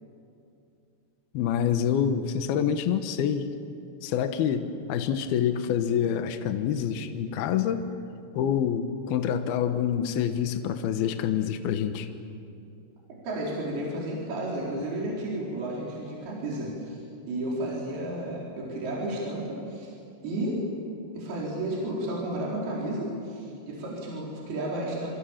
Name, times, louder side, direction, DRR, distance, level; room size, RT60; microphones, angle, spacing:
voice 1, 1.3-3.5 4.0-7.8 8.3-12.1, left 8 dB, 70° left, 8 dB, 2.6 m, -27 dB
voice 2, 13.2-19.9 20.2-20.6 21.1-25.1, right 1 dB, 55° right, -4 dB, 6.0 m, -32 dB
29.0 x 25.5 x 7.4 m, 2.6 s
omnidirectional pair, 5.6 m